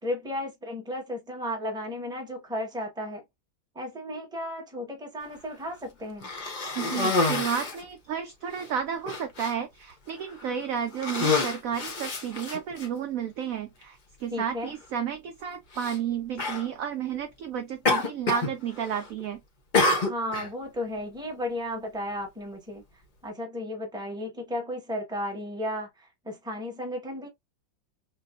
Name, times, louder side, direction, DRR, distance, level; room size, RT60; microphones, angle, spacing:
voice 1, 0.0-3.2 3.7-6.3 14.3-14.7 20.1-22.8 23.2-27.3, left 1 dB, 5° right, 0.8 m, -34 dB
Cough, 6.2-7.8 8.6-8.7 9.1-9.5 10.3-10.5 10.9-12.9 13.8-13.9 15.7-16.0 16.4-16.7 17.9-18.5 18.8-19.2 19.7-20.5, left 3 dB, 40° left, 0.7 m, -27 dB
voice 2, 6.8-19.4, right 8 dB, 75° right, 0.7 m, -32 dB
5.8 x 2.2 x 2.5 m
omnidirectional pair, 2.0 m